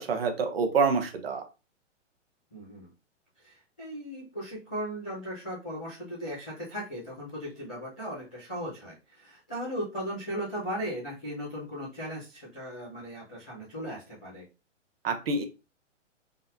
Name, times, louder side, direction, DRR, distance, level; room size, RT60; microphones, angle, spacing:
voice 1, 0.0-1.4 15.0-15.4, right 4 dB, 50° right, 6 dB, 1.0 m, -27 dB
voice 2, 2.5-2.9 3.4-14.4, equal, 5° left, -14 dB, 0.5 m, -37 dB
4.1 x 3.7 x 2.7 m, 0.29 s
hypercardioid pair, 175°, 37 cm